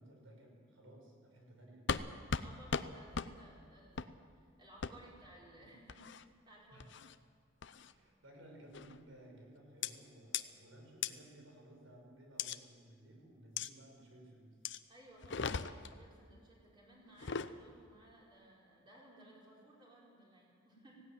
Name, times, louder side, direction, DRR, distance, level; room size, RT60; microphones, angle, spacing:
voice 1, 0.0-1.9 5.6-5.7 6.7-6.9 7.8-14.6, right 1 dB, 80° right, 1 dB, 5.9 m, -58 dB
sound 1, 1.9-2.0 2.3-2.5 2.7-2.9 3.1-3.3 4.0-4.1 4.8-4.9 5.9-6.2 6.8-7.1 7.6-7.9 8.7-9.0 9.8-9.9 10.3-10.4 11.0-11.1 12.4-12.6 13.6-13.7 14.6-14.8 15.2-15.9 17.1-17.5, left 6 dB, 60° left, 0.7 m, -37 dB
voice 2, 2.4-6.0 6.5-6.8 14.9-21.0, right 1 dB, 25° right, -4 dB, 5.3 m, -59 dB
18.5 x 16.5 x 9.3 m, 2.1 s
head